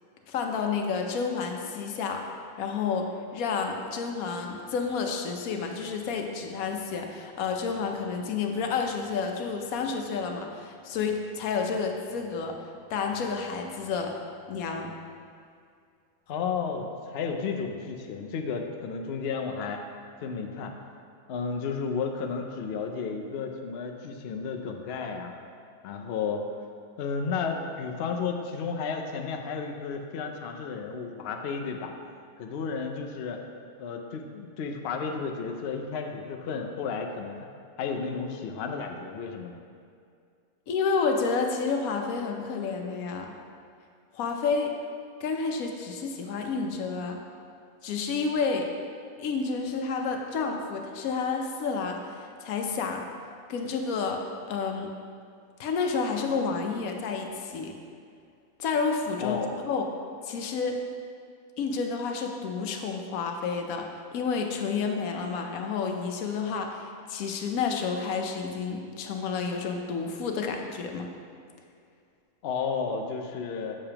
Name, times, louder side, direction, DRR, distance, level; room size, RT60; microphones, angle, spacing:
voice 1, 0.3-2.3 2.6-12.6 12.9-14.1 14.5-14.9 40.7-43.4 44.1-44.7 45.2-47.2 47.8-48.7 49.2-53.0 53.5-54.9 55.6-57.8 58.6-59.4 59.7-59.8 60.2-60.8 61.6-71.1, left 5 dB, 85° left, 3 dB, 1.1 m, -30 dB
voice 2, 16.3-19.8 20.2-20.7 21.3-25.3 25.8-26.5 27.0-31.9 32.4-33.4 33.8-37.3 37.8-39.6 59.2-59.6 72.4-73.8, left 5 dB, 60° left, 3 dB, 0.7 m, -32 dB
7.4 x 6.7 x 2.9 m, 2.3 s
omnidirectional pair, 1.5 m